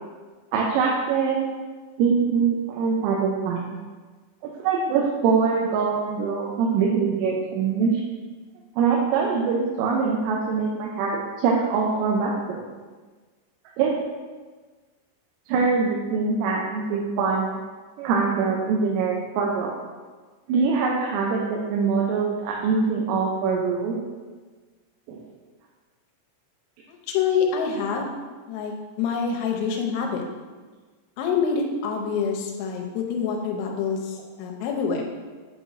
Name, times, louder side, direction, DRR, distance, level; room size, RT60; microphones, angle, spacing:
voice 1, 0.5-1.5 2.0-3.8 4.4-8.0 8.8-12.6 13.8-13.9 15.5-17.5 18.0-19.7 20.5-24.0 25.1-25.2, right 5 dB, 90° right, -2 dB, 3.3 m, -23 dB
voice 2, 26.9-28.2 28.5-30.2 31.2-35.0, left 6 dB, 90° left, 1 dB, 3.4 m, -26 dB
8.5 x 4.9 x 2.6 m, 1.4 s
omnidirectional pair, 5.7 m